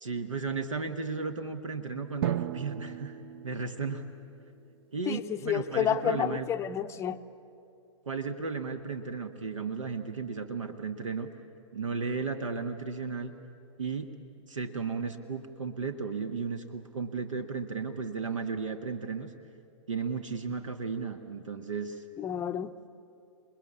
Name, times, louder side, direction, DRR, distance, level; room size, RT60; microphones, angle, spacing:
voice 1, 0.0-4.0 4.9-6.5 8.0-11.3 11.7-13.3 13.8-14.1 14.5-19.3 19.9-22.0, right 5 dB, 75° right, 1.3 m, -34 dB
Drum, 2.2-4.7, right 12 dB, 50° right, 0.6 m, -36 dB
voice 2, 5.1-7.2 22.2-22.7, left 9 dB, 15° left, 0.6 m, -30 dB
28.0 x 21.0 x 8.5 m
figure-of-eight pair, 115°, 16 cm